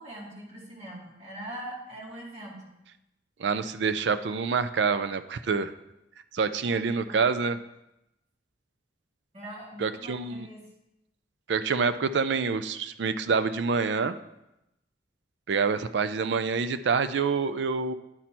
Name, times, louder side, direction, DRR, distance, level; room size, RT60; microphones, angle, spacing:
voice 1, 0.0-2.7 6.6-6.8 7.1-7.3 9.3-10.7, right 1 dB, 40° right, -4 dB, 2.0 m, -42 dB
voice 2, 3.4-5.7 6.3-7.6 9.8-10.5 11.5-14.2 15.5-17.9, right 5 dB, 65° right, 12 dB, 0.4 m, -27 dB
10.5 x 4.3 x 4.3 m, 0.90 s
head